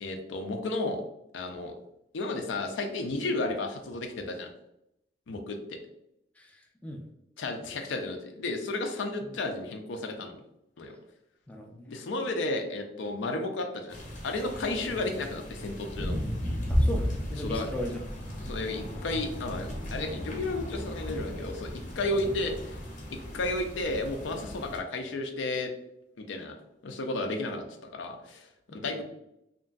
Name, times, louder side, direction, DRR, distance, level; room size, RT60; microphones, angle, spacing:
voice 1, 0.0-1.0 1.3-1.7 2.1-4.5 5.3-5.8 7.4-10.4 10.8-10.9 11.9-14.0 14.2-16.2 17.4-17.7 18.4-22.8 23.3-25.7 26.2-26.5 26.8-29.0, left 2 dB, 85° left, 5 dB, 0.4 m, -33 dB
voice 2, 6.4-7.0 9.2-9.3 11.5-11.9 16.7-18.0 22.2-22.3 28.7-29.0, equal, 10° left, 1 dB, 0.3 m, -38 dB
sound 1, 13.9-24.8, equal, 40° left, 0.7 m, -34 dB
2.9 x 2.5 x 2.3 m, 0.83 s
head